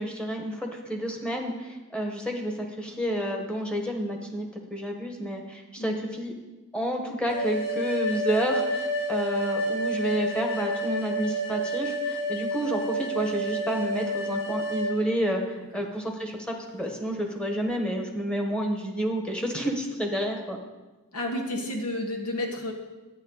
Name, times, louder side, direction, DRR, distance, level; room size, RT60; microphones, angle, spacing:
voice 1, 0.0-6.3 6.7-8.8 9.1-20.6, equal, 5° left, 2 dB, 1.4 m, -30 dB
sound 1, 7.3-14.9, right 1 dB, 45° left, 4.0 m, -29 dB
voice 2, 21.1-22.7, left 1 dB, 75° left, 1 dB, 2.0 m, -31 dB
11.5 x 9.1 x 4.1 m, 1.1 s
head